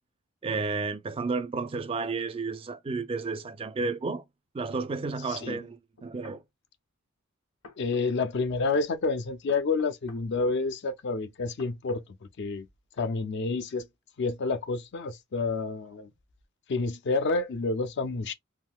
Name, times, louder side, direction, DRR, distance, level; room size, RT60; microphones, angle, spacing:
voice 1, 0.4-4.2 4.5-6.4, right 4 dB, 25° right, 0.3 m, -32 dB
sound 1, 4.7-4.8 6.0-6.4 7.6-8.4 9.5-10.2 11.6-12.1 13.0-13.1, left 3 dB, 70° left, 0.9 m, -50 dB
voice 2, 5.3-5.6 7.8-12.0 12.4-12.7 13.0-13.8 14.2-16.1 16.7-18.3, left 3 dB, 55° left, 0.4 m, -29 dB
3.5 x 2.5 x 2.2 m
head